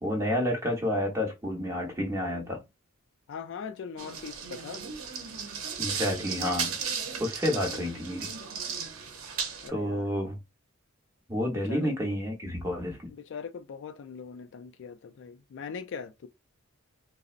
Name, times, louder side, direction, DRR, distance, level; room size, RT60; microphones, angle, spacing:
voice 1, 0.0-2.6 5.8-6.8 7.2-8.3 9.7-10.4 11.3-13.1, left 1 dB, 15° right, 0.8 m, -30 dB
voice 2, 3.3-4.8 7.7-7.9 9.6-10.1 11.5-12.1 13.1-16.3, left 6 dB, 60° left, 0.4 m, -41 dB
sound 1, 4.0-9.7, right 6 dB, 75° right, 0.7 m, -35 dB
3.8 x 2.0 x 2.4 m
head